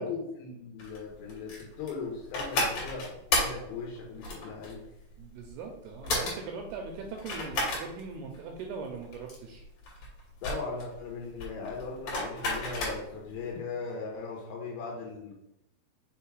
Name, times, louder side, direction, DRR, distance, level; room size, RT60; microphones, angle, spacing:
voice 1, 0.0-4.8 10.4-15.3, left 4 dB, 80° left, -1 dB, 3.2 m, -38 dB
sound 1, 0.8-13.3, left 2 dB, 45° left, 3.0 m, -33 dB
voice 2, 5.2-9.6, right 4 dB, 85° right, 2 dB, 2.3 m, -40 dB
6.6 x 3.5 x 4.6 m, 0.84 s
omnidirectional pair, 5.2 m